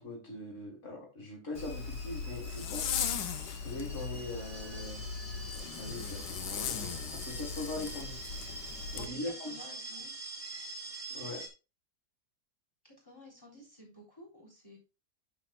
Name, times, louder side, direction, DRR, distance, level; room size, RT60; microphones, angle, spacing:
voice 1, 0.0-3.0 3.6-5.0 5.8-8.3 8.9-9.5 11.1-11.4, left 2 dB, 45° left, -2 dB, 2.1 m, -41 dB
Zipper (clothing), 1.5-9.1, left 7 dB, 80° left, 1.4 m, -38 dB
sound 1, 1.5-11.5, right 2 dB, 25° right, 1.4 m, -45 dB
voice 2, 9.0-10.3 12.8-14.8, left 1 dB, 15° left, -3 dB, 3.4 m, -53 dB
10.0 x 6.5 x 2.3 m, 0.29 s
omnidirectional pair, 1.7 m